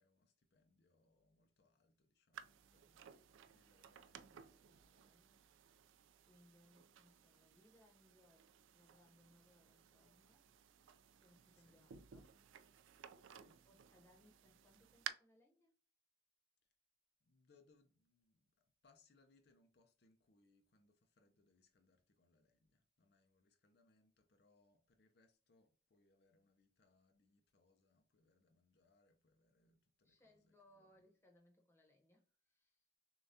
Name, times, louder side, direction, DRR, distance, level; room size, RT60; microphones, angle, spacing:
voice 1, 0.0-4.8 11.5-11.9 13.3-13.6 16.6-16.7 17.2-31.0, left 3 dB, 55° left, 0.5 m, -75 dB
sound 1, 2.3-15.1, right 9 dB, 80° right, 0.3 m, -57 dB
voice 2, 4.7-5.4 6.2-10.5 11.2-12.4 13.6-15.7 30.0-32.9, left 1 dB, 10° left, 0.8 m, -71 dB
6.6 x 2.3 x 2.7 m
head